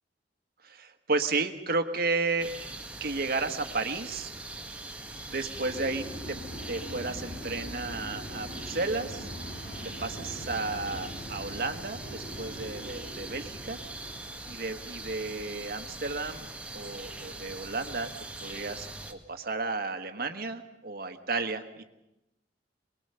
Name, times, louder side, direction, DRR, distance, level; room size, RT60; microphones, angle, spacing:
voice 1, 0.6-2.5 3.0-4.3 5.3-6.4 6.7-9.3 10.0-13.8 14.5-16.5 16.7-18.1 18.4-21.8, right 3 dB, 55° right, 8 dB, 1.5 m, -33 dB
sound 1, 2.4-19.1, right 2 dB, 5° right, 1.5 m, -42 dB
sound 2, 5.5-14.5, equal, 60° left, 5.7 m, -42 dB
23.5 x 20.5 x 6.8 m, 0.93 s
head